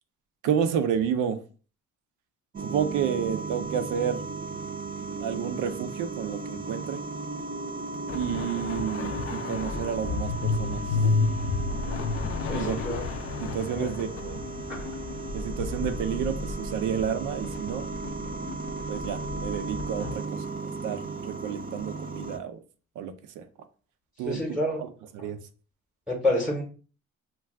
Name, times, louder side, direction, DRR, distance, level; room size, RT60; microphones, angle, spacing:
voice 1, 0.4-1.4 2.6-4.2 5.2-7.0 8.1-10.8 12.5-12.8 13.4-14.4 15.3-17.8 18.9-20.4 20.8-22.6 23.0-23.4 24.2-24.4 25.1-25.4, right 8 dB, 85° right, 0.5 m, -30 dB
sound 1, 2.5-22.4, right 4 dB, 30° right, 0.5 m, -36 dB
sound 2, 8.1-20.1, left 4 dB, 50° left, 0.4 m, -32 dB
voice 2, 12.5-13.0 13.7-13.9 14.7-14.9 24.2-24.8 26.1-26.6, left 1 dB, ahead, 0.8 m, -28 dB
2.3 x 2.3 x 3.3 m
cardioid pair, 90°, 30 cm